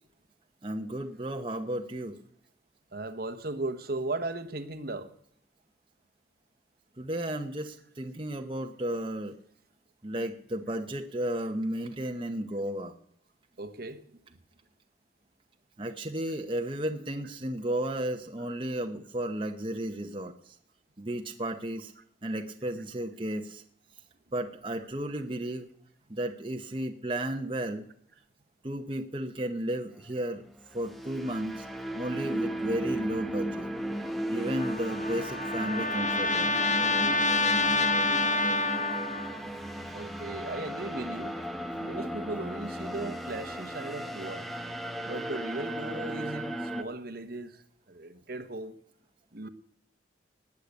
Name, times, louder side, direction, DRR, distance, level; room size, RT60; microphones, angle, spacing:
voice 1, 0.6-2.2 7.0-9.4 10.0-12.9 15.8-20.3 21.0-21.9 22.2-23.6 24.3-25.7 26.1-27.8 28.6-30.4 30.7-31.6 31.9-33.7 34.3-36.5, right 1 dB, 25° right, 1.0 m, -33 dB
voice 2, 2.9-5.1 13.6-14.2 18.4-18.5 22.0-22.1 37.1-37.2 39.9-41.4 41.8-44.5 45.0-48.8 49.3-49.5, right 2 dB, 50° right, 1.1 m, -37 dB
sound 1, 30.6-46.8, right 1 dB, ahead, 0.9 m, -35 dB
Trumpet, 34.6-39.4, left 3 dB, 40° left, 1.2 m, -27 dB
19.5 x 6.7 x 8.3 m
head